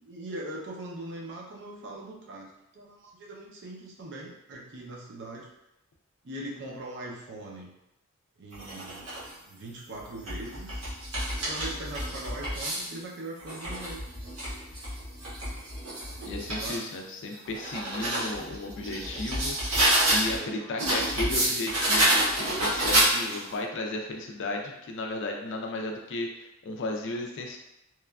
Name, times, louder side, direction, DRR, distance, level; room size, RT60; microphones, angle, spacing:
voice 1, 0.0-5.5 6.2-7.7 8.4-9.1 9.5-10.9 11.4-14.0 16.6-16.8 20.4-20.9, right 1 dB, 50° right, -2 dB, 0.5 m, -41 dB
sound 1, 8.5-9.3 10.0-12.9 13.4-16.8 17.3-20.4 20.8-23.5, right 1 dB, 85° right, 1.1 m, -28 dB
voice 2, 16.2-19.8 20.1-27.6, left 2 dB, 55° left, 2 dB, 0.4 m, -34 dB
3.0 x 2.3 x 2.3 m, 0.88 s
head